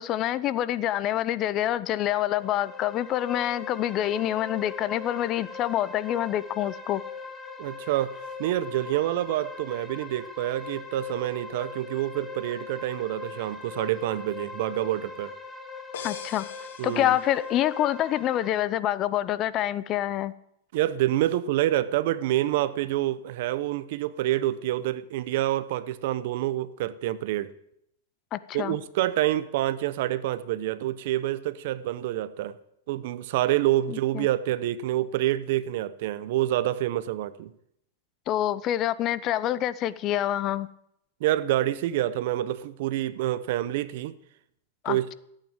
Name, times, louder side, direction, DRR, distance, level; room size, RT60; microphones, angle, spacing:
voice 1, 0.0-7.0 16.0-16.5 16.8-20.3 28.3-28.8 33.9-34.3 38.3-40.7 44.8-45.1, left 12 dB, 35° left, 0.7 m, -27 dB
sound 1, 2.2-18.5, left 4 dB, 5° left, 1.8 m, -41 dB
voice 2, 7.6-15.3 16.8-17.2 20.7-27.5 28.5-32.6 32.9-37.5 41.2-44.1 44.9-45.1, right 14 dB, 60° right, 0.9 m, -27 dB
sound 2, 15.9-17.7, left 8 dB, 80° left, 1.7 m, -43 dB
14.0 x 9.1 x 8.8 m
supercardioid pair, 140°, 0 cm